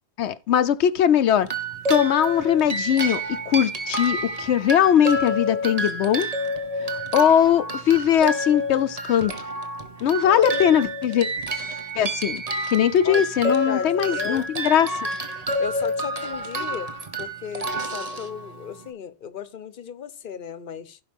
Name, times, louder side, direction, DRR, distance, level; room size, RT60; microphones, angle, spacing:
voice 1, 0.2-1.5 1.9-6.3 6.8-9.3 10.0-11.3 12.0-15.1, left 9 dB, 90° left, 1.0 m, -20 dB
sound 1, 1.4-18.9, equal, 35° right, 1.3 m, -29 dB
voice 2, 13.0-14.5 15.6-16.9 17.2-21.0, left 8 dB, 55° left, 1.0 m, -35 dB
16.0 x 5.4 x 3.5 m
omnidirectional pair, 1.1 m